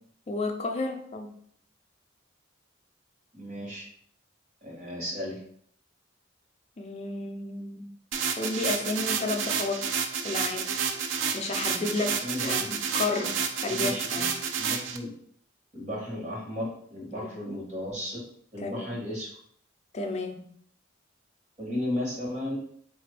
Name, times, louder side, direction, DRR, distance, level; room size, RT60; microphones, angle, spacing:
voice 1, 0.3-1.4 6.8-7.9 8.4-9.9 10.2-10.8 11.3-14.3 17.1-17.3 18.6-18.9 19.9-20.5, left 3 dB, 30° left, 4 dB, 0.4 m, -32 dB
voice 2, 3.3-3.8 4.6-5.4 12.2-12.8 13.7-14.2 14.6-15.1 15.7-18.2 18.5-19.3 21.6-22.6, left 1 dB, 35° right, -3 dB, 1.2 m, -34 dB
sound 1, 8.1-15.0, right 6 dB, 75° right, 0.4 m, -30 dB
4.0 x 2.4 x 3.3 m, 0.64 s
head